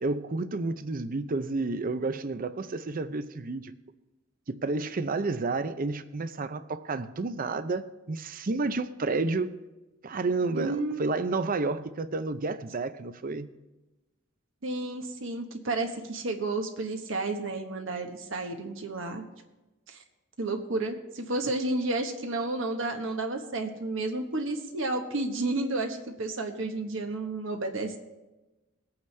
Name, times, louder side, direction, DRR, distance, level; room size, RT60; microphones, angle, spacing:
voice 1, 0.0-3.7 4.5-9.6 10.0-13.5, right 3 dB, 40° right, 12 dB, 0.6 m, -30 dB
voice 2, 10.5-11.0 14.6-19.2 19.9-20.0 20.4-28.0, right 2 dB, 65° right, 4 dB, 1.1 m, -31 dB
21.0 x 8.6 x 3.3 m, 1.1 s
head